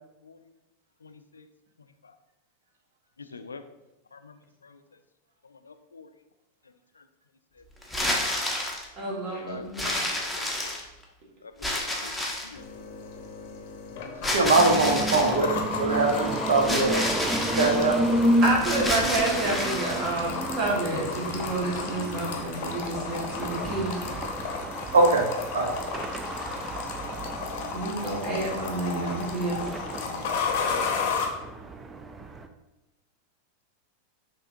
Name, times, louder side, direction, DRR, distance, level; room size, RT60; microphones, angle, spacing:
voice 1, 1.0-1.4 3.3-3.6 4.1-4.4 4.6-4.8 5.6-6.1 8.3-8.4 9.2-10.0 10.4-10.7 11.4-12.1 12.4-12.6 22.3-22.4, left 4 dB, 75° left, 9 dB, 0.3 m, -45 dB
sound 1, 7.8-8.9 9.8-11.0 11.6-12.6 14.2-15.4 16.6-17.8 18.6-20.1, left 1 dB, ahead, 0.7 m, -29 dB
voice 2, 9.0-10.1 18.4-23.9 27.7-29.6, right 2 dB, 35° right, -2 dB, 1.4 m, -29 dB
sound 2, 12.5-31.3, left 5 dB, 50° left, 0.7 m, -34 dB
voice 3, 14.3-17.0 17.6-18.0 24.9-25.3 25.5-25.7, right 3 dB, 65° right, 2 dB, 0.7 m, -22 dB
sound 3, 14.6-32.5, right 1 dB, 15° right, 0.4 m, -32 dB
5.4 x 3.6 x 2.5 m, 1.0 s
figure-of-eight pair, 90°, 0 cm